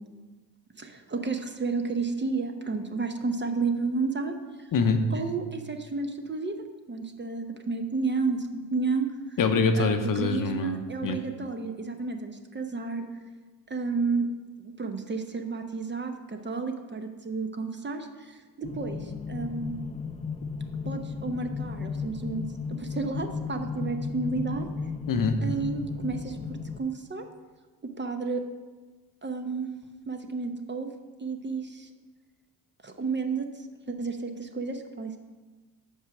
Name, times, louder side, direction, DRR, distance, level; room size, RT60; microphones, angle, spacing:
voice 1, 0.8-4.7 5.1-6.6 6.9-9.4 9.7-13.1 13.7-14.3 14.6-19.7 20.8-22.4 22.7-24.7 25.4-27.2 27.8-28.4 29.2-29.7 30.1-30.9 31.2-31.9 32.8-35.2, right 4 dB, 20° right, 5 dB, 0.8 m, -31 dB
voice 2, 4.7-5.0 9.4-11.2 25.1-25.4, left 4 dB, 40° left, 7 dB, 0.9 m, -25 dB
sound 1, 18.6-26.8, left 5 dB, 15° left, 0.5 m, -35 dB
6.4 x 5.4 x 6.1 m, 1.3 s
hypercardioid pair, 60°, 49 cm